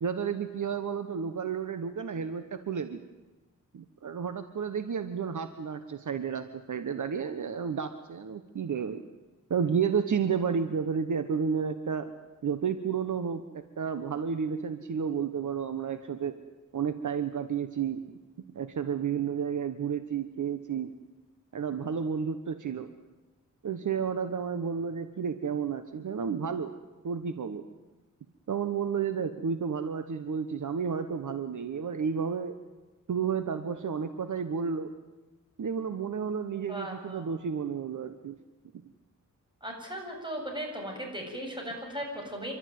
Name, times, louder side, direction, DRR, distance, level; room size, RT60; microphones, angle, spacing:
voice 1, 0.0-3.0 3.7-9.0 9.5-12.1 12.4-16.4 16.7-18.0 18.5-20.9 21.5-22.9 23.6-26.8 27.0-27.6 28.5-32.5 33.1-34.9 35.6-38.3, right 6 dB, 65° right, 10 dB, 1.3 m, -31 dB
voice 2, 36.7-37.3 39.6-42.5, equal, 15° right, 1 dB, 7.9 m, -37 dB
29.0 x 13.0 x 9.5 m, 1.2 s
cardioid pair, 80°, 33 cm